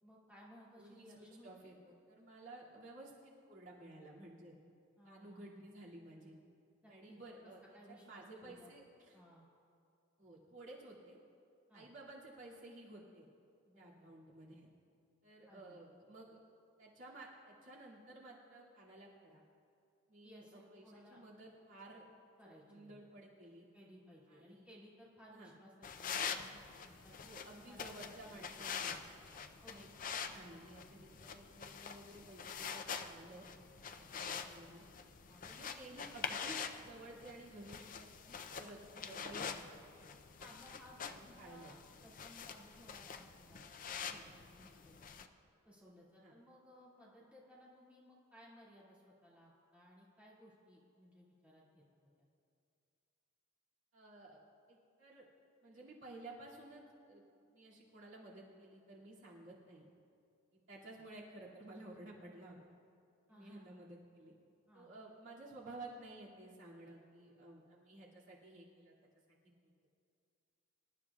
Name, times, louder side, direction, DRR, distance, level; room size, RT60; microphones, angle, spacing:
voice 1, 0.0-1.7 5.0-5.7 6.8-8.7 9.1-9.5 11.7-11.9 13.7-14.1 15.5-15.8 20.2-21.2 22.4-23.0 23.7-28.7 29.6-29.8 33.9-34.1 35.2-35.9 39.0-39.3 40.4-41.8 42.0-45.3 45.6-52.3 63.3-63.8 64.7-64.9, equal, 5° right, -7 dB, 2.4 m, -60 dB
voice 2, 0.8-4.5 5.0-6.3 6.9-7.6 7.9-9.2 10.2-11.2 11.7-13.2 13.8-14.7 15.2-16.4 16.8-19.4 20.1-22.0 22.7-23.7 24.3-24.7 25.3-25.5 27.2-28.9 29.7-33.5 34.1-34.8 35.4-38.8 39.1-39.7 41.1-41.7 44.0-44.3 44.7-44.8 46.2-46.3 53.9-54.4 54.7-55.3 55.6-57.2 57.5-59.9 60.5-62.6 63.3-64.3 64.7-68.9, right 2 dB, 60° right, -6 dB, 2.5 m, -54 dB
sound 1, 25.8-45.3, left 6 dB, 40° left, 0.5 m, -46 dB
25.5 x 12.5 x 2.4 m, 2.5 s
head